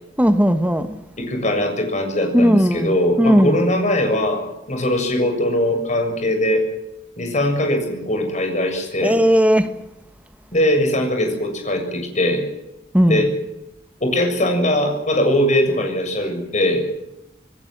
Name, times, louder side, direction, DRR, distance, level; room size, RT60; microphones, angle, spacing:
voice 1, 0.2-0.9 2.3-3.6 9.0-9.7 12.9-13.2, equal, 10° right, 1.4 m, -16 dB
voice 2, 1.2-6.7 7.2-9.2 10.5-12.5 13.1-13.3 14.0-16.9, left 1 dB, 45° left, 7.1 m, -20 dB
27.5 x 20.0 x 7.6 m
head